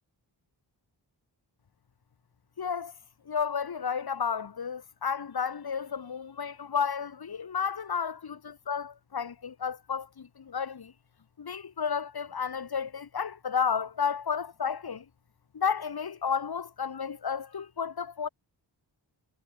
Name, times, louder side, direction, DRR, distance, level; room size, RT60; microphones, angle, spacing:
voice 1, 2.6-2.9 3.3-10.9 11.4-15.0 15.5-18.3, left 6 dB, 60° left, 2.8 m, -32 dB
wide cardioid pair, 160°, 43 cm